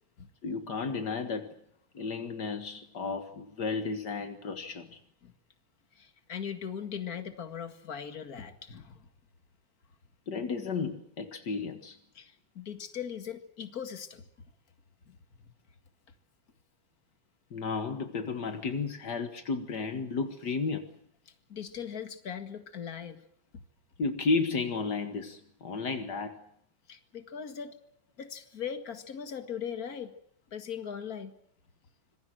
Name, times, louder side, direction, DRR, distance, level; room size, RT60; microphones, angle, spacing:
voice 1, 0.4-1.5 1.9-5.0 10.3-12.0 17.5-20.9 24.0-26.4, left 4 dB, 75° left, 7 dB, 0.9 m, -33 dB
voice 2, 5.9-9.1 12.1-14.2 15.1-15.2 21.3-23.2 26.9-27.8 28.2-30.1 30.5-31.3, left 8 dB, 45° left, 8 dB, 1.2 m, -39 dB
26.0 x 21.5 x 7.7 m, 0.69 s
omnidirectional pair, 4.6 m